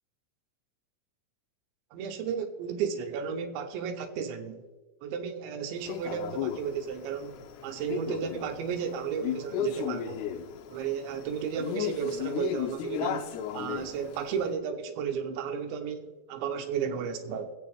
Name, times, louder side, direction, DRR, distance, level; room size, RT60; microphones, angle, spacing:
voice 1, 1.9-4.6 5.0-10.2 10.7-17.5, right 7 dB, 80° right, 2.9 m, -33 dB
Male speech man speaking, 5.9-14.4, left 10 dB, 85° left, 2.3 m, -35 dB
22.5 x 8.2 x 3.4 m
omnidirectional pair, 5.7 m